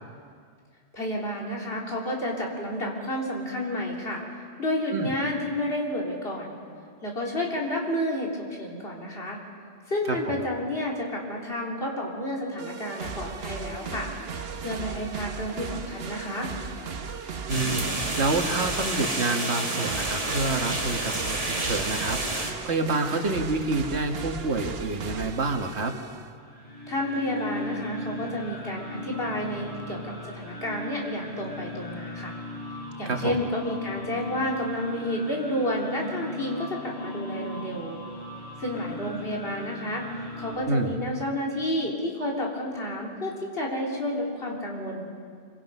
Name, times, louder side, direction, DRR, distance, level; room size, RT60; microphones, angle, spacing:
voice 1, 0.9-4.2 4.6-6.6 7.0-9.4 9.9-14.1 14.6-16.5 26.9-32.3 33.0-38.0 38.6-40.1 40.4-45.0, left 1 dB, 65° left, -2 dB, 3.6 m, -30 dB
voice 2, 10.1-10.4 17.1-17.2 17.5-25.9 33.1-33.4 40.7-40.9, right 3 dB, 85° right, 4 dB, 1.8 m, -28 dB
sound 1, 12.6-26.3, right 5 dB, 65° right, 1.2 m, -37 dB
sound 2, 17.5-22.5, right 1 dB, 35° right, 2.1 m, -30 dB
sound 3, 26.3-40.5, left 1 dB, 35° left, 5.9 m, -38 dB
25.5 x 24.0 x 5.5 m, 2.1 s
omnidirectional pair, 1.1 m